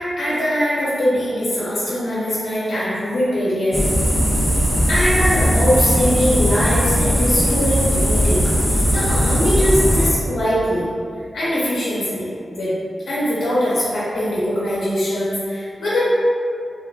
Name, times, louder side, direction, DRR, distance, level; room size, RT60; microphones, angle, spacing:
voice 1, 0.0-3.9 4.9-8.4 8.7-10.9 11.3-12.7 13.1-16.0, equal, 90° left, -9 dB, 0.7 m, -21 dB
sound 1, 3.7-10.1, equal, ahead, 0.5 m, -18 dB
3.3 x 2.2 x 2.4 m, 2.4 s
wide cardioid pair, 100°, 0 cm